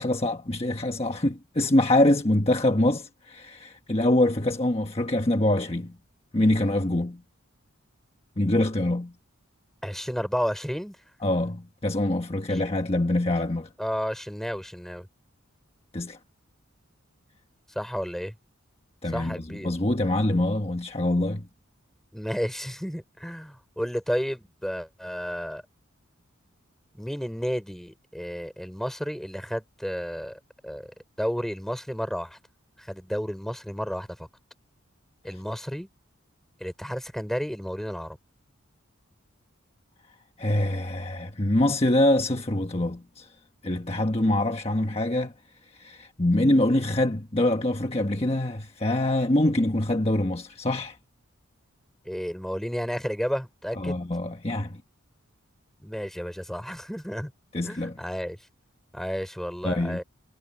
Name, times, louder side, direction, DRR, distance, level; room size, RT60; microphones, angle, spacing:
voice 1, 0.0-6.0 6.3-7.2 8.4-9.1 11.2-13.7 15.9-16.2 19.0-21.5 40.4-43.3 43.6-45.3 45.7-51.0 53.8-54.8 57.5-58.0 59.6-60.0, left 1 dB, 30° left, 1.3 m, -24 dB
voice 2, 9.8-11.0 12.5-12.6 13.8-15.1 17.8-18.3 19.1-19.7 22.1-25.6 26.9-30.9 31.2-32.4 32.8-34.1 35.2-35.9 36.6-38.2 52.0-54.0 55.8-57.3 57.6-58.4 58.9-60.0, equal, ahead, 5.4 m, -32 dB
head